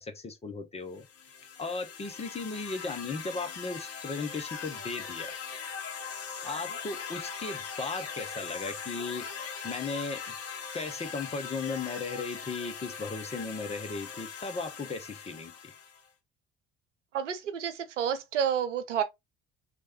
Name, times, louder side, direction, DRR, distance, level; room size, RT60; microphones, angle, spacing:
voice 1, 0.0-1.1 1.6-5.3 6.4-9.3 9.6-10.2 10.7-15.5, left 4 dB, 20° left, 0.6 m, -36 dB
sound 1, 1.0-16.1, left 6 dB, 40° left, 1.0 m, -40 dB
voice 2, 17.1-19.0, right 8 dB, 80° right, 0.5 m, -30 dB
3.2 x 2.1 x 2.8 m
figure-of-eight pair, 55°, 36 cm